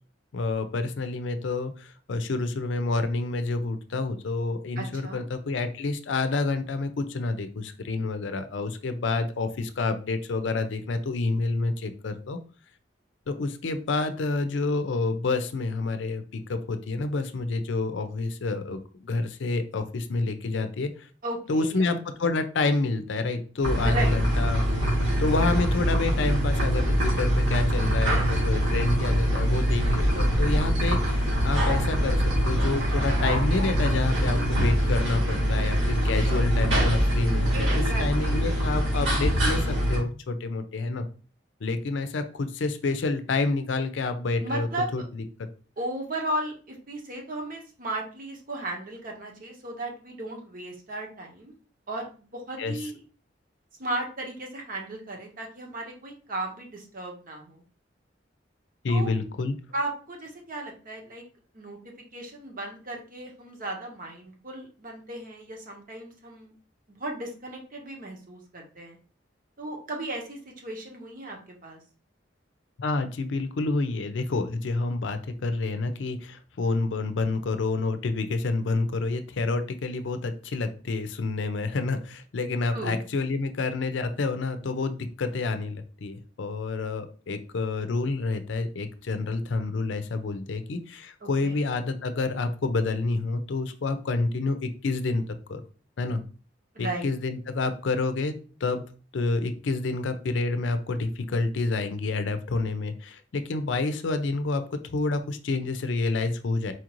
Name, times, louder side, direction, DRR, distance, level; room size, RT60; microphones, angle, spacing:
voice 1, 0.3-12.4 13.3-21.1 21.5-24.6 25.2-41.0 41.6-44.7 44.9-45.5 52.6-52.7 58.8-59.5 72.8-95.2 95.5-95.6 96.0-96.2 96.8-98.8 99.1-106.7, left 3 dB, 75° left, 10 dB, 0.5 m, -28 dB
voice 2, 4.8-5.2 21.2-21.9 23.8-24.2 37.5-38.3 44.4-44.9 45.8-51.5 51.9-53.0 53.8-57.6 58.9-59.1 59.7-61.2 61.5-66.5 66.9-69.0 69.6-71.8 82.7-83.0 91.2-91.6 96.7-97.1, right 1 dB, 50° right, 1 dB, 1.0 m, -35 dB
sound 1, 23.6-40.0, equal, 80° right, 1.8 m, -24 dB
4.3 x 2.5 x 3.0 m, 0.39 s
head